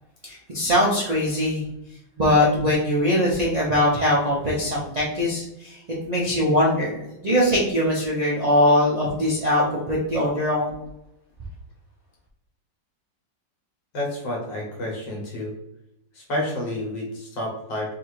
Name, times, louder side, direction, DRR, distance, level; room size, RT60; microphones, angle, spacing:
voice 1, 0.2-1.6 2.2-10.7, left 1 dB, 80° right, -6 dB, 0.3 m, -21 dB
voice 2, 13.9-15.5 16.1-18.0, left 1 dB, 80° left, -3 dB, 1.8 m, -30 dB
3.6 x 2.5 x 4.6 m, 0.84 s
omnidirectional pair, 1.9 m